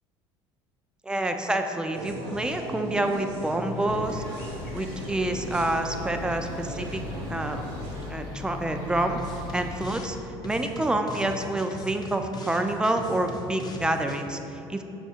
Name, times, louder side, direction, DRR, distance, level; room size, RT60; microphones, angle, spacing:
voice 1, 1.0-4.2 4.7-7.0 7.3-7.6 8.1-10.2 10.4-14.8, right 1 dB, 5° right, 5 dB, 0.3 m, -28 dB
sound 1, 1.9-8.1, equal, 65° right, 0.9 m, -37 dB
sound 2, 4.0-9.9, left 3 dB, 80° left, 0.8 m, -39 dB
sound 3, 9.2-10.1 10.4-14.2, left 1 dB, 35° left, 0.6 m, -40 dB
5.4 x 2.4 x 4.2 m, 2.8 s
hypercardioid pair, 75°, 12 cm